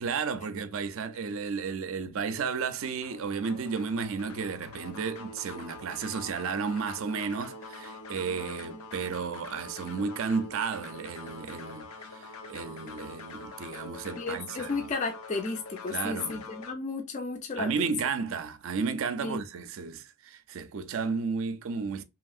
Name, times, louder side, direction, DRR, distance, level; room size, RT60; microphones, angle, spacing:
voice 1, 0.0-14.9 15.9-16.4 17.6-22.0, right 5 dB, 65° right, 0.4 m, -33 dB
sound 1, 3.0-16.7, left 3 dB, 85° left, 0.6 m, -45 dB
voice 2, 14.2-17.9 19.2-19.4, left 3 dB, 35° left, 0.4 m, -33 dB
2.9 x 2.7 x 2.3 m
head